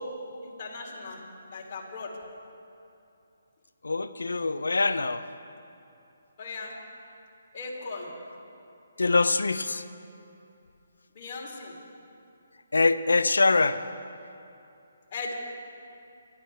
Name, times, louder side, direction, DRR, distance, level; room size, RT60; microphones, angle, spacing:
voice 1, 0.4-1.2 1.5-2.2 6.4-6.7 7.5-8.1 11.1-11.7 15.1-15.4, left 3 dB, 40° left, -3 dB, 3.2 m, -38 dB
voice 2, 3.8-5.2 9.0-9.8 12.7-13.8, left 3 dB, 80° left, 13 dB, 0.6 m, -24 dB
23.5 x 12.0 x 3.4 m, 2.8 s
figure-of-eight pair, 145°, 0 cm